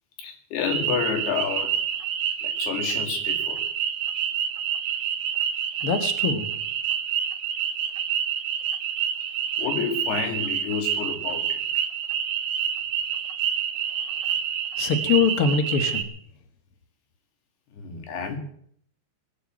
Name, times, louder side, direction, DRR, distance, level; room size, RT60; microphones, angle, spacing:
voice 1, 0.2-1.8 2.4-3.6 9.6-11.8 17.7-18.4, left 6 dB, 65° left, 4 dB, 4.1 m, -30 dB
sound 1, 0.7-16.0, right 9 dB, 60° right, 2.9 m, -28 dB
voice 2, 5.8-6.5 14.8-16.1, left 5 dB, 85° left, 7 dB, 1.2 m, -23 dB
20.5 x 9.2 x 7.6 m, 0.63 s
omnidirectional pair, 5.2 m